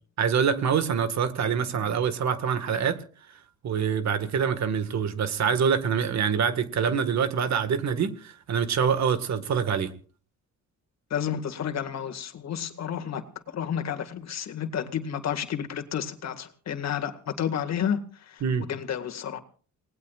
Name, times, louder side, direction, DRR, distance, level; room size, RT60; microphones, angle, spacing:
voice 1, 0.2-3.0 3.6-9.9 18.4-18.7, right 7 dB, 65° right, 1.8 m, -25 dB
voice 2, 11.1-18.4 18.7-19.4, left 8 dB, 60° left, 2.0 m, -31 dB
28.5 x 19.0 x 2.5 m
cardioid pair, 90°, 30 cm